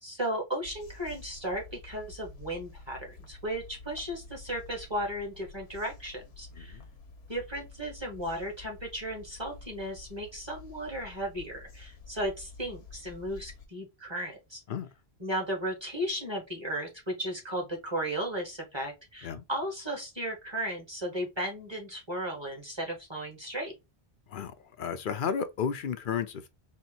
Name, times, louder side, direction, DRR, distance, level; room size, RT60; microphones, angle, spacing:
voice 1, 0.0-6.8 7.3-14.6 15.2-23.7, right 1 dB, 25° right, 1.6 m, -35 dB
sound 1, 0.6-13.7, left 3 dB, 75° left, 1.1 m, -49 dB
voice 2, 24.8-26.5, left 7 dB, 60° left, 0.7 m, -32 dB
4.3 x 2.9 x 2.8 m
omnidirectional pair, 1.1 m